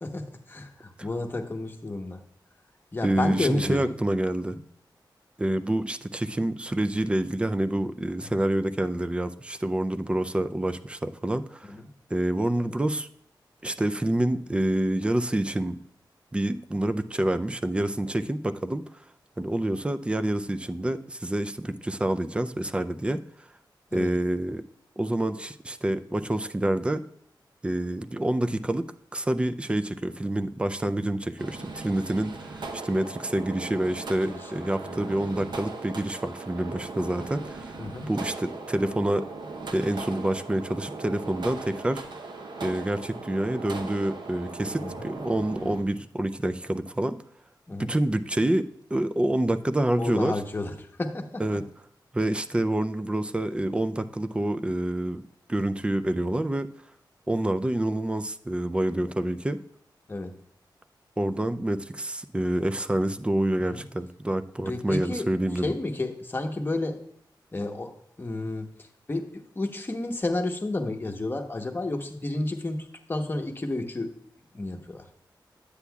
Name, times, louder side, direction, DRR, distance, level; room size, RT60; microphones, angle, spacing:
voice 1, 0.0-2.2 2.9-3.9 4.5-4.6 8.2-8.3 11.7-11.9 23.9-24.1 34.2-35.2 37.8-38.1 44.8-45.1 45.6-45.7 47.7-47.9 50.0-51.6 60.1-60.3 63.6-63.8 64.7-65.3 65.6-67.0 67.5-74.1 74.5-75.1, left 2 dB, 25° left, 3 dB, 1.0 m, -32 dB
voice 2, 3.0-4.6 5.4-11.7 12.1-13.1 13.6-15.8 16.3-18.8 19.4-23.2 23.9-24.6 25.0-27.0 27.6-28.9 29.1-37.7 38.1-39.3 39.7-42.0 42.6-47.2 47.8-50.4 51.4-51.6 52.1-55.2 55.5-56.7 57.3-59.6 61.2-65.7, right 1 dB, 15° right, 10 dB, 0.4 m, -27 dB
sound 1, 31.4-45.8, right 3 dB, 70° right, 0.9 m, -39 dB
9.8 x 8.2 x 2.3 m, 0.70 s
wide cardioid pair, 115°, 8 cm